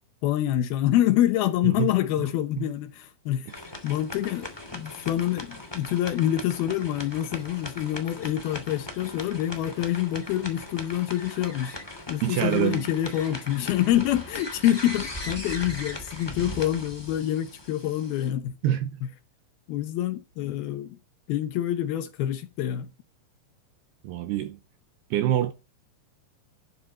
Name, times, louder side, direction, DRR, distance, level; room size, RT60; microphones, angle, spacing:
voice 1, 0.2-3.5 3.8-11.8 12.1-18.5 19.0-19.1 19.7-21.0 21.3-22.9, left 12 dB, 75° left, 2.3 m, -26 dB
sound 1, 3.5-18.3, left 1 dB, 10° left, 1.4 m, -39 dB
voice 2, 12.2-12.8 18.6-18.9 24.0-24.6 25.1-25.5, right 11 dB, 75° right, 2.5 m, -25 dB
11.5 x 10.5 x 4.2 m
omnidirectional pair, 5.5 m